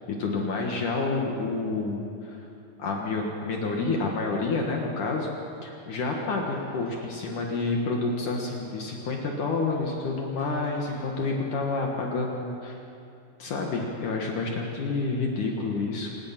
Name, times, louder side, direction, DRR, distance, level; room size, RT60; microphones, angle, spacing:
voice 1, 0.1-2.0 2.3-2.5 2.8-5.3 5.6-12.8 13.4-16.1, left 3 dB, 60° left, 0 dB, 2.9 m, -29 dB
sound 1, 6.5-7.3 10.4-11.1, equal, 25° left, 6.9 m, -49 dB
26.0 x 20.0 x 5.9 m, 2.6 s
omnidirectional pair, 4.2 m